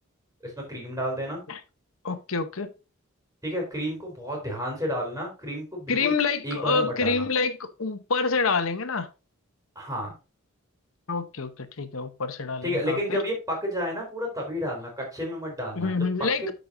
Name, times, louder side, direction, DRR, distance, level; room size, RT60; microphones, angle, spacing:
voice 1, 0.4-1.4 3.4-6.1 6.4-7.2 9.8-10.1 12.6-15.9, equal, 10° right, 3.8 m, -31 dB
voice 2, 2.0-2.7 5.9-9.1 11.1-13.2 15.8-16.5, left 4 dB, 70° left, 0.9 m, -27 dB
13.0 x 5.2 x 2.7 m
head